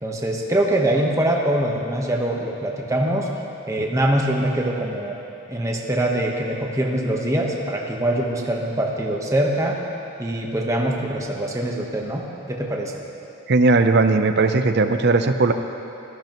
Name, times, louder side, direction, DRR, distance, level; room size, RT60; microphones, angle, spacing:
voice 1, 0.0-3.3 3.7-5.2 5.5-9.8 10.2-12.9, right 1 dB, 15° right, -1 dB, 1.1 m, -23 dB
voice 2, 13.5-15.5, right 3 dB, 55° right, 8 dB, 0.6 m, -17 dB
17.0 x 13.0 x 3.0 m, 2.9 s
head